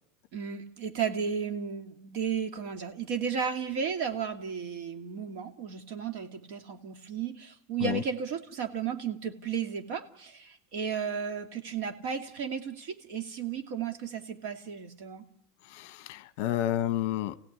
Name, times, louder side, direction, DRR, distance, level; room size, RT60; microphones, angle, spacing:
voice 1, 0.3-15.2, right 7 dB, 50° right, 2.4 m, -34 dB
voice 2, 15.6-17.4, left 12 dB, 50° left, 1.1 m, -30 dB
29.0 x 16.5 x 9.7 m
supercardioid pair, 175°, 0 cm